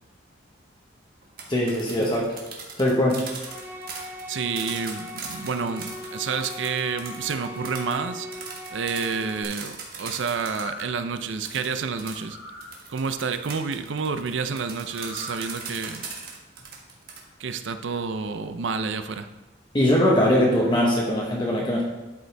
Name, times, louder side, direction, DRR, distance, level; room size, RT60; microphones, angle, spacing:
sound 1, 1.2-10.9 11.4-17.2, right 5 dB, 50° right, 1.5 m, -39 dB
voice 1, 1.5-2.4 2.8-3.2 19.7-21.8, left 1 dB, 25° left, -3 dB, 1.0 m, -21 dB
sound 2, 3.4-9.4, left 1 dB, 10° right, 0.8 m, -39 dB
voice 2, 4.3-8.3 8.7-12.4 12.9-16.1 17.4-19.3, right 5 dB, 75° right, 9 dB, 0.5 m, -29 dB
sound 3, 10.4-11.0 12.1-12.7 14.8-15.5 16.0-16.1, left 1 dB, 60° left, 1.1 m, -41 dB
12.0 x 5.3 x 3.4 m, 1.1 s
head